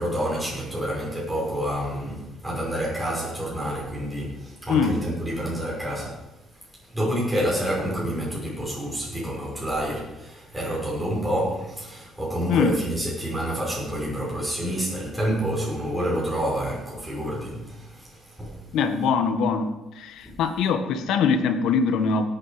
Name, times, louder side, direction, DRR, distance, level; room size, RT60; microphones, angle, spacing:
voice 1, 0.0-6.3 6.9-18.6 20.2-20.4, equal, 5° right, -6 dB, 5.7 m, -28 dB
voice 2, 18.7-19.7 20.0-22.3, left 5 dB, 80° left, 8 dB, 1.4 m, -22 dB
18.0 x 8.9 x 5.0 m, 0.99 s
cardioid pair, 125°, 0 cm